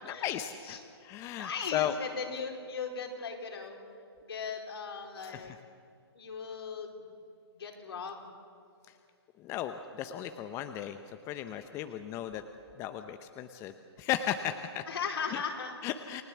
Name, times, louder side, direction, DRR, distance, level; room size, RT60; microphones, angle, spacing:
voice 1, 0.1-2.0 5.2-5.5 9.4-11.0 11.3-12.4 12.8-14.8 15.8-16.2, left 11 dB, 20° left, 9 dB, 0.8 m, -35 dB
voice 2, 1.3-3.8 4.2-5.5 6.1-7.0 7.6-8.3 14.9-15.7, left 5 dB, 65° left, 2 dB, 4.5 m, -38 dB
29.5 x 17.5 x 7.3 m, 2.4 s
hypercardioid pair, 140°, 14 cm